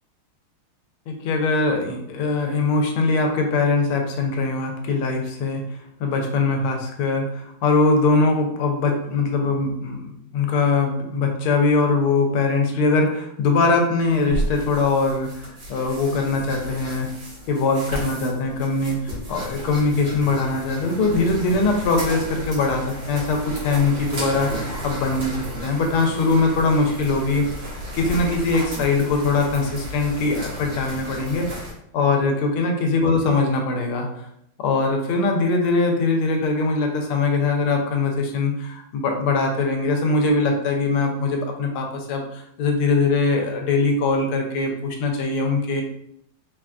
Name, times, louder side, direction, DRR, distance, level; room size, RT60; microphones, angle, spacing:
voice 1, 1.1-5.6 6.0-17.1 17.5-19.0 19.3-25.3 25.6-27.5 27.9-31.5 31.9-34.1 34.6-45.8, left 3 dB, 85° left, 2 dB, 1.5 m, -22 dB
sound 1, 14.0-31.7, equal, 55° right, 1.6 m, -33 dB
4.0 x 2.4 x 2.2 m, 0.74 s
omnidirectional pair, 2.3 m